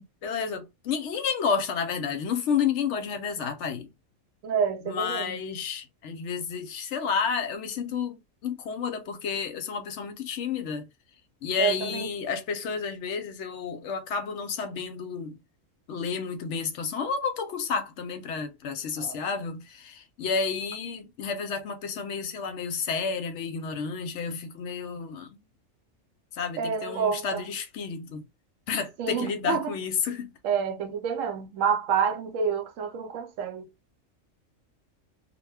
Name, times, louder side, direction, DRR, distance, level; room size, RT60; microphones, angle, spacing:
voice 1, 0.0-3.9 4.8-10.9 11.4-15.4 15.9-25.4 26.3-28.3 28.7-30.3, left 6 dB, 70° left, 0.8 m, -31 dB
voice 2, 4.4-5.4 11.6-12.1 19.0-19.2 26.6-27.4 29.0-29.7 30.4-33.7, right 6 dB, 80° right, 1.0 m, -28 dB
2.2 x 2.1 x 3.3 m
omnidirectional pair, 1.3 m